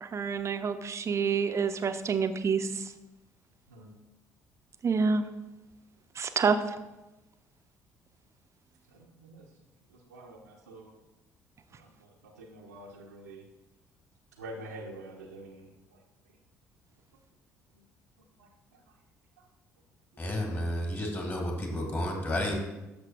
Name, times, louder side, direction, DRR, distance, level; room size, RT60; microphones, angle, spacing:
voice 1, 0.0-2.8 4.8-5.2 6.2-6.6, right 5 dB, 35° right, 10 dB, 0.7 m, -27 dB
voice 2, 10.1-10.9 11.8-11.9 12.4-13.4 14.4-15.7 18.4-18.5, right 1 dB, 80° right, -2 dB, 0.8 m, -45 dB
voice 3, 20.2-22.5, left 1 dB, 25° left, 1 dB, 2.4 m, -31 dB
12.0 x 6.7 x 2.4 m, 1.0 s
figure-of-eight pair, 50°, 8 cm